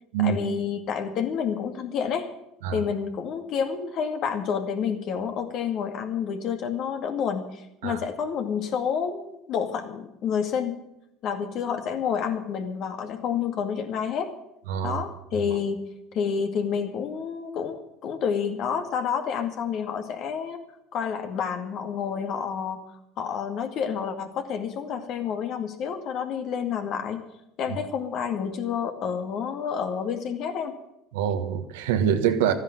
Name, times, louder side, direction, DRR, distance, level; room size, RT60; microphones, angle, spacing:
voice 1, 0.2-2.3 2.7-10.8 11.2-14.3 14.8-15.8 16.1-20.6 20.9-22.8 23.2-27.2 27.6-30.8, left 7 dB, 60° left, 2.3 m, -29 dB
voice 2, 14.7-15.0 31.1-32.5, right 8 dB, 85° right, 1.5 m, -24 dB
13.0 x 10.0 x 9.3 m
hypercardioid pair, 80°, 0 cm